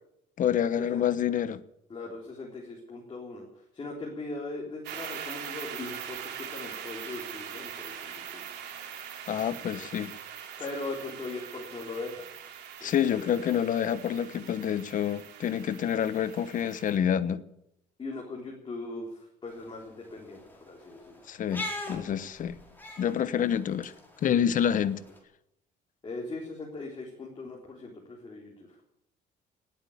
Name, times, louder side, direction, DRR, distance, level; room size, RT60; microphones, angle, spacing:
voice 1, 0.4-1.6 9.3-10.1 12.8-17.4 21.3-22.6 23.0-23.9 24.2-25.0, left 9 dB, 50° left, 1.0 m, -28 dB
voice 2, 1.9-3.4 3.7-8.4 9.6-9.9 10.6-12.3 12.8-13.3 18.0-20.4 20.7-21.0 23.4-23.6 26.0-28.7, left 3 dB, 30° left, 3.7 m, -39 dB
sound 1, 4.8-17.0, right 9 dB, 80° right, 3.0 m, -42 dB
sound 2, 19.5-25.2, left 1 dB, 10° left, 4.4 m, -43 dB
18.0 x 9.1 x 8.6 m
cardioid pair, 110°, 17 cm